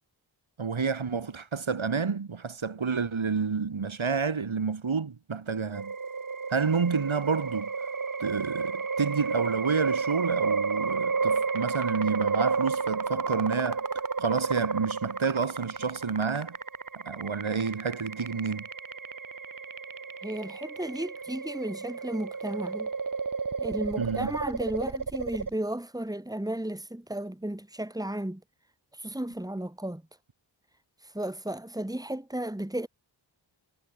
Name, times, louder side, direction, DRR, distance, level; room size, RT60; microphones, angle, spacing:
voice 1, 0.6-5.9 6.5-7.7 8.2-13.8 14.2-16.6 17.0-18.7 24.0-24.3, right 5 dB, 85° right, 5.3 m, -29 dB
sound 1, 5.7-25.6, right 4 dB, 45° right, 1.6 m, -32 dB
voice 2, 20.2-22.9 23.6-28.4 29.0-30.0 31.0-32.9, right 1 dB, 10° right, 2.8 m, -34 dB
wide cardioid pair, 55°, 46 cm